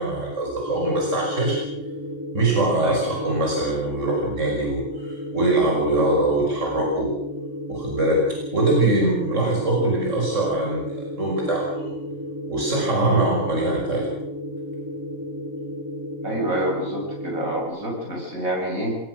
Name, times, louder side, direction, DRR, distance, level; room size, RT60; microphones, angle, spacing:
voice 1, 0.0-1.6 2.3-7.1 7.7-8.2 8.5-11.9 12.5-14.1, right 2 dB, 60° right, -1 dB, 6.3 m, -23 dB
sound 1, 0.7-17.6, left 1 dB, 15° right, 3.0 m, -33 dB
voice 2, 2.8-3.1 9.3-9.6 13.0-13.2 16.2-19.0, right 1 dB, 80° right, 0 dB, 7.8 m, -27 dB
27.0 x 19.0 x 6.5 m, 0.80 s
omnidirectional pair, 1.4 m